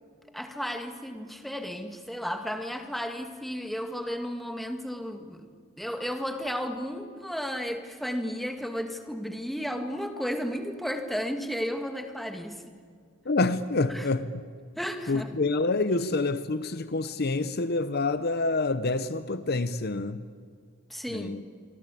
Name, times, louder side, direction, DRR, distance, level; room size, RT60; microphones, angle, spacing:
voice 1, 0.3-5.5 5.8-12.7 13.9-14.1 14.8-15.3 20.9-21.5, equal, ahead, 1.9 m, -33 dB
voice 2, 13.3-14.3 15.1-20.2 21.1-21.4, left 3 dB, 50° left, 0.8 m, -27 dB
25.5 x 24.5 x 8.5 m
head